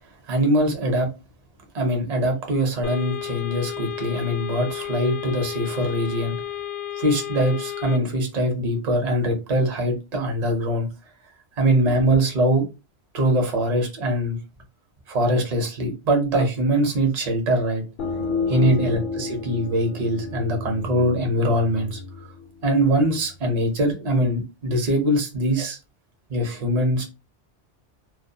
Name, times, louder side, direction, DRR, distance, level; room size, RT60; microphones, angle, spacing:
voice 1, 0.3-1.1 1.7-6.4 7.0-10.9 11.6-12.6 13.1-14.4 15.1-17.8 18.5-22.0 22.6-25.8 26.3-27.0, right 1 dB, 40° right, 0.7 m, -22 dB
sound 1, 2.8-8.0, left 11 dB, 85° left, 0.9 m, -32 dB
sound 2, 18.0-23.4, left 5 dB, 55° left, 0.6 m, -31 dB
2.2 x 2.2 x 2.6 m
omnidirectional pair, 1.2 m